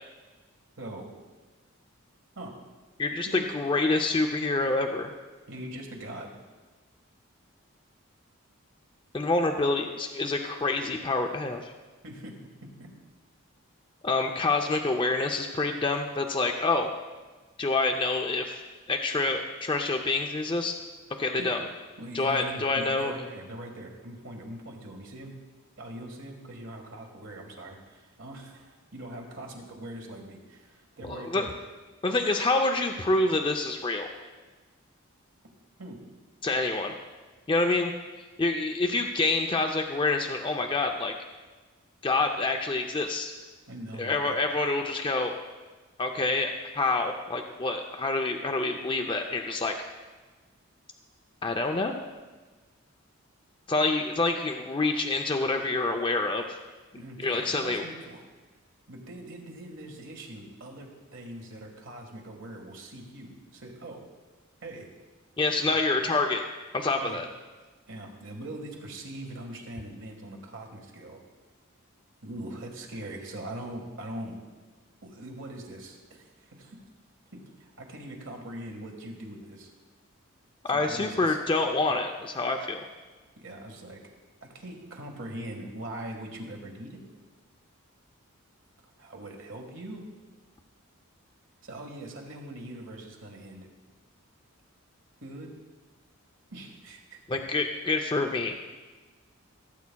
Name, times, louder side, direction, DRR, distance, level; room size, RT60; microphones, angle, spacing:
voice 1, 0.8-1.1 2.4-2.5 3.3-3.4 5.5-6.4 12.0-12.9 21.4-21.6 22.0-25.4 25.8-31.5 32.1-32.2 35.8-36.0 43.7-44.4 57.0-58.2 58.9-64.0 64.6-64.9 66.9-67.2 67.9-71.2 72.2-74.4 75.0-76.8 77.3-79.7 80.7-81.4 83.4-84.0 84.4-87.0 89.0-90.1 91.6-93.7 95.2-95.5 96.5-97.2, right 1 dB, 60° right, 1 dB, 1.6 m, -42 dB
voice 2, 3.0-5.1 9.1-11.7 14.0-16.9 17.6-18.6 18.9-20.8 21.2-21.6 22.1-23.1 31.0-31.5 32.0-34.1 36.4-36.9 37.5-37.9 38.4-41.1 42.0-43.3 44.0-45.4 46.0-49.7 51.4-52.0 53.7-56.6 57.2-57.8 65.4-66.4 66.7-67.3 80.7-82.9 97.3-98.6, left 3 dB, 25° left, 4 dB, 0.4 m, -27 dB
16.5 x 8.3 x 2.3 m, 1.3 s
head